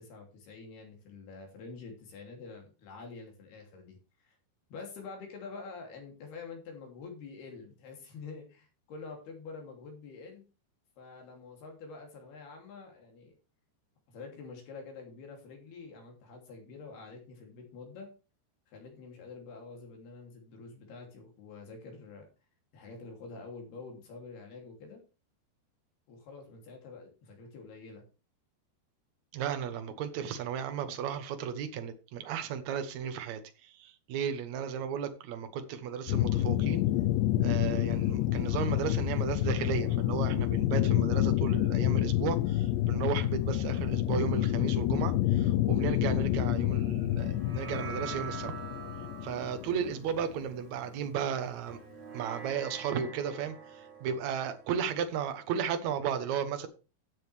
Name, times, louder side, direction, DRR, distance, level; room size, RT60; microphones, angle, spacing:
voice 1, 0.0-4.4 4.7-10.5 11.0-13.3 14.1-18.1 18.7-22.3 22.7-25.0 26.1-28.0, left 4 dB, 65° left, 4.8 m, -47 dB
voice 2, 29.3-36.8 37.4-48.5 49.2-51.8 52.1-56.7, right 8 dB, 75° right, 1.7 m, -34 dB
sound 1, 36.1-50.4, left 13 dB, 85° left, 2.9 m, -28 dB
sound 2, 47.2-55.9, right 5 dB, 40° right, 1.4 m, -46 dB
14.0 x 7.8 x 3.4 m
omnidirectional pair, 5.0 m